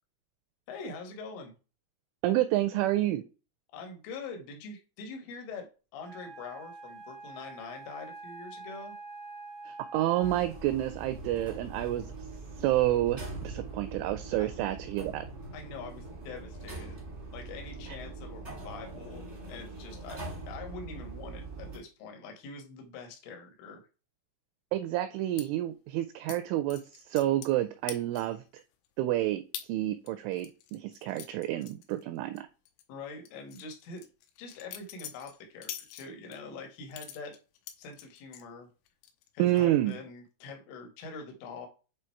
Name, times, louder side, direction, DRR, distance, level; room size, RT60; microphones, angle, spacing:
voice 1, 0.7-1.5 3.7-5.7 5.9-9.0 14.4-14.5 15.5-17.0 17.3-20.2 20.5-23.9 32.9-34.0 34.4-37.3 37.8-38.7 39.3-41.7, left 4 dB, 75° left, 3 dB, 3.9 m, -44 dB
voice 2, 2.2-3.2 9.7-12.1 12.6-15.3 17.9-18.0 24.7-28.4 29.0-32.4 39.4-40.0, right 14 dB, 85° right, 10 dB, 2.7 m, -29 dB
Wind instrument woodwind instrument, 6.0-10.6, right 3 dB, 30° left, 0.5 m, -46 dB
sound 1, 10.2-21.8, right 3 dB, 60° right, 0.7 m, -42 dB
sound 2, 25.4-25.5 26.3-26.4 26.7-27.6 27.9-28.4 28.8-28.9 29.5-29.7 30.1-32.4 32.7-32.8 33.3-36.4 36.9-38.5 38.9-39.3 39.6-39.9, left 10 dB, 90° left, 3.4 m, -45 dB
9.0 x 3.3 x 4.5 m, 0.33 s
omnidirectional pair, 6.0 m